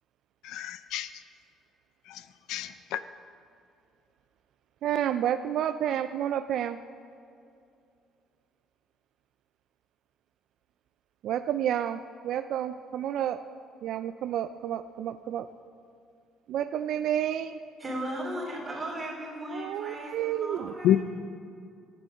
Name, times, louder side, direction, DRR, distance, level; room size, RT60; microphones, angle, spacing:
voice 1, 0.5-1.1 2.5-3.0 20.8-21.0, left 12 dB, 80° left, 13 dB, 0.4 m, -26 dB
voice 2, 4.8-6.8 11.2-13.4 13.8-15.5 16.5-17.6 19.5-20.7, right 10 dB, 60° right, 10 dB, 0.3 m, -30 dB
voice 3, 17.8-21.0, right 1 dB, 15° right, -4 dB, 3.1 m, -36 dB
11.0 x 9.2 x 5.2 m, 2.4 s
cardioid pair, 150°, 0 cm